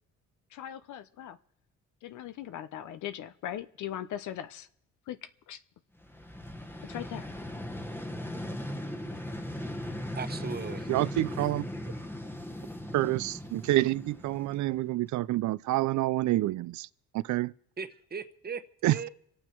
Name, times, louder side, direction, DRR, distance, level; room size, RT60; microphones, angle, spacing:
voice 1, 0.5-1.4 2.0-4.7 5.1-5.2 5.5-5.6 6.9-7.3, left 11 dB, 75° left, 0.7 m, -39 dB
Vehicle, 6.0-15.0, left 1 dB, 5° left, 1.0 m, -38 dB
voice 2, 10.2-10.9 17.8-19.1, right 5 dB, 30° right, 1.1 m, -38 dB
voice 3, 10.9-11.6 12.9-16.9 17.1-17.5 18.8-19.0, right 16 dB, 70° right, 0.5 m, -28 dB
26.0 x 8.8 x 4.5 m
cardioid pair, 90°, 30 cm